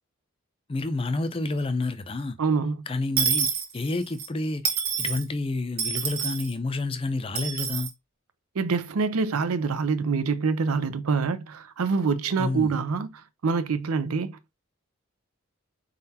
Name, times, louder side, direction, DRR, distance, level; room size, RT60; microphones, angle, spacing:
voice 1, 0.7-2.4 2.9-7.9 12.4-12.8, left 2 dB, 25° left, 0.5 m, -29 dB
voice 2, 2.4-2.8 8.6-13.1 13.4-14.6, right 5 dB, 85° right, 0.5 m, -26 dB
Dishes pots and pans / Coin (dropping), 3.2-4.3 4.6-5.2 5.8-6.5 7.3-7.9, right 7 dB, 45° right, 1.2 m, -27 dB
4.3 x 3.9 x 2.8 m
head